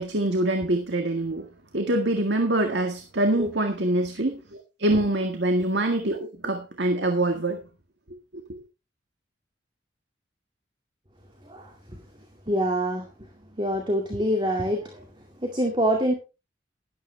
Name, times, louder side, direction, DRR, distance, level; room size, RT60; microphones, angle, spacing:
voice 1, 0.0-1.5 1.7-7.6, right 1 dB, 70° right, 5 dB, 1.8 m, -25 dB
voice 2, 11.4-12.0 12.5-15.1 15.4-16.1, equal, 25° right, 3 dB, 2.2 m, -26 dB
13.0 x 12.0 x 3.4 m, 0.29 s
head